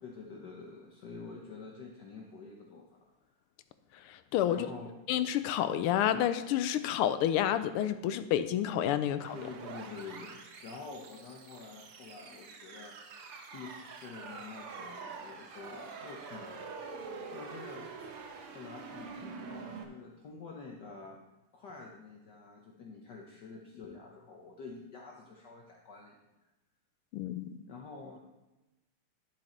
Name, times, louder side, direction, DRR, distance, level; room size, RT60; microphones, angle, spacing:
voice 1, 0.0-2.9 4.4-4.9 9.3-16.6 16.9-18.1 18.5-21.2 21.5-26.2 27.7-28.2, left 4 dB, 60° left, -1 dB, 1.4 m, -48 dB
voice 2, 4.1-4.7 5.1-9.3 27.1-27.6, left 11 dB, 85° left, 11 dB, 1.5 m, -29 dB
sound 1, 9.2-19.8, right 5 dB, 80° right, 1.9 m, -46 dB
11.0 x 7.4 x 3.9 m, 1.0 s
omnidirectional pair, 2.4 m